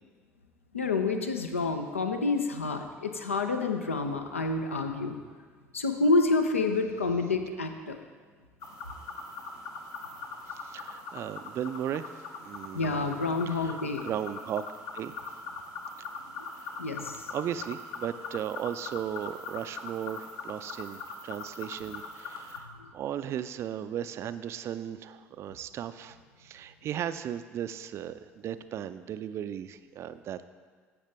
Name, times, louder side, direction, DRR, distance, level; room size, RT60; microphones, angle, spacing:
voice 1, 0.7-5.2 5.7-8.0 12.7-14.0 16.4-16.5 16.8-17.3 22.8-22.9, left 3 dB, 80° left, 6 dB, 0.6 m, -28 dB
sound 1, 8.6-22.6, left 3 dB, 55° left, 1.0 m, -41 dB
voice 2, 10.5-12.1 12.4-12.9 13.5-14.7 14.9-15.1 16.6-16.8 17.3-22.7 22.9-30.4, right 10 dB, 40° right, 12 dB, 0.3 m, -36 dB
14.5 x 5.7 x 3.4 m, 1.5 s
figure-of-eight pair, 60°, 7 cm